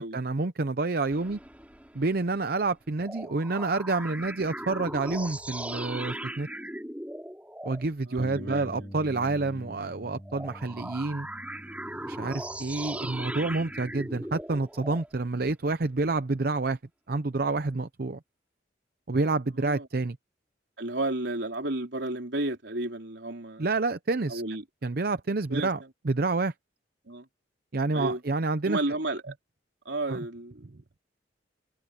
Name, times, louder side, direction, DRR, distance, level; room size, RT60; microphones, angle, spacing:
voice 1, 0.0-1.4 1.9-6.5 7.6-11.3 12.0-16.8 17.1-18.2 19.1-20.2 23.6-24.4 24.8-26.5 27.7-28.8 30.1-30.2, right 3 dB, 50° right, 0.7 m, -28 dB
sound 1, 1.1-2.7 3.0-7.8 10.3-15.1, right 1 dB, 10° right, 4.2 m, -39 dB
voice 2, 8.1-8.9 19.6-19.9 20.8-23.7 24.3-24.6 25.5-25.7 27.1-27.3 27.9-28.2 28.7-29.4 29.9-30.6, right 2 dB, 70° right, 3.6 m, -32 dB
Bass guitar, 8.2-14.4, equal, 15° left, 3.7 m, -45 dB
head